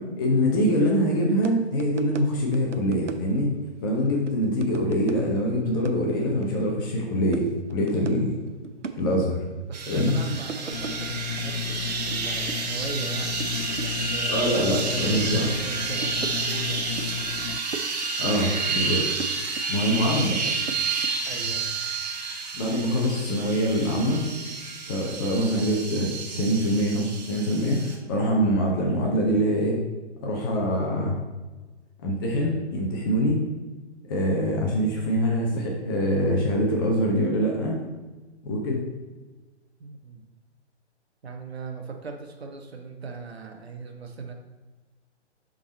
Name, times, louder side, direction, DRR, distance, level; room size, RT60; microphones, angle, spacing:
voice 1, 0.0-3.5 3.8-8.4 8.9-9.4 9.9-10.2 14.3-15.5 18.2-19.0 19.7-20.4 22.5-24.2 24.9-29.8 30.2-31.2 32.0-33.4 34.1-37.8 38.4-38.8, equal, 20° left, -1 dB, 0.8 m, -24 dB
sound 1, 1.4-1.5 1.8-2.3 2.5-3.6 3.9-5.5 5.8-6.6 7.0-7.1 7.3-8.1 8.5-9.3 10.0-11.1 11.6-12.2 12.4-14.1 14.3-15.6 15.9-17.1 17.4-18.5 18.8-20.0 20.3-21.1, right 5 dB, 85° right, 0.7 m, -37 dB
sound 2, 9.7-28.0, right 4 dB, 35° right, 0.9 m, -30 dB
voice 2, 9.7-16.9 21.2-21.7 39.8-40.3 41.2-44.3, right 4 dB, 60° right, 4 dB, 1.2 m, -38 dB
sound 3, 10.7-17.6, left 8 dB, 85° left, 0.5 m, -34 dB
7.1 x 4.0 x 4.0 m, 1.2 s
figure-of-eight pair, 135°, 35 cm